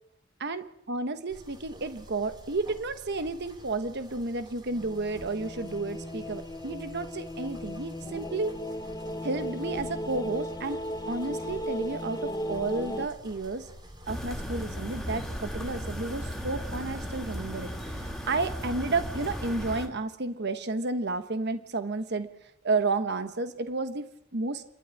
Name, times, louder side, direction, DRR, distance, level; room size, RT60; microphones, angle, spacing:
voice 1, 0.4-8.5 9.2-10.8 11.1-13.7 14.1-22.3 22.6-24.6, right 3 dB, 55° right, 10 dB, 1.2 m, -32 dB
sound 1, 1.3-19.5, equal, 20° right, 3.0 m, -49 dB
sound 2, 4.7-13.1, left 1 dB, 20° left, 0.9 m, -36 dB
sound 3, 14.1-19.9, equal, ahead, 2.7 m, -36 dB
27.0 x 12.0 x 9.8 m, 0.82 s
head